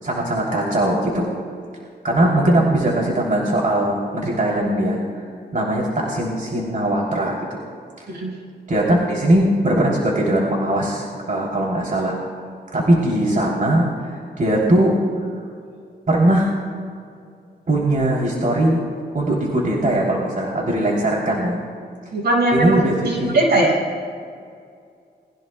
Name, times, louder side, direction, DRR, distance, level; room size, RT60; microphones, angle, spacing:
voice 1, 0.0-1.3 2.0-5.2 5.5-7.6 8.7-12.2 12.7-14.9 16.1-16.5 17.7-18.9 19.1-21.6 22.5-23.4, right 1 dB, 50° right, -3 dB, 3.3 m, -20 dB
voice 2, 22.1-22.8 23.0-23.8, right 2 dB, 75° right, -2 dB, 5.5 m, -19 dB
29.5 x 21.0 x 2.3 m, 2.3 s
cardioid pair, 70°, 18 cm